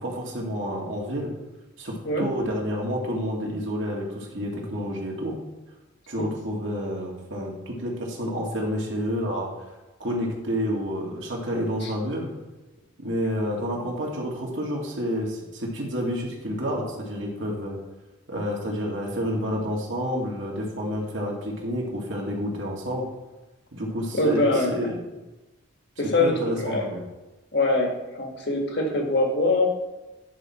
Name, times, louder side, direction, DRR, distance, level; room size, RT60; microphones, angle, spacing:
voice 1, 0.0-1.3 1.8-5.4 6.1-9.5 10.0-12.3 13.0-17.8 18.3-23.1 23.7-25.2 26.2-27.0, equal, 65° right, -2 dB, 2.1 m, -29 dB
voice 2, 24.1-24.9 26.0-26.9 27.5-29.7, left 2 dB, 55° left, 1 dB, 1.6 m, -23 dB
10.0 x 6.0 x 4.2 m, 1.1 s
head